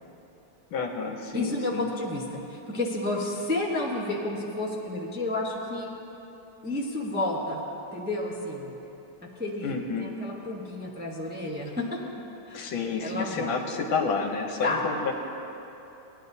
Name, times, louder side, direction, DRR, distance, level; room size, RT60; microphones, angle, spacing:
voice 1, 0.7-1.9 9.6-10.1 12.5-15.1, left 5 dB, 75° left, 3 dB, 1.7 m, -30 dB
voice 2, 1.3-5.9 6.6-7.6 7.9-8.7 9.2-12.0 12.4-12.7 13.0-13.6 14.6-14.8, left 2 dB, 10° right, -3 dB, 0.6 m, -31 dB
19.0 x 10.5 x 2.7 m, 3.0 s
omnidirectional pair, 2.2 m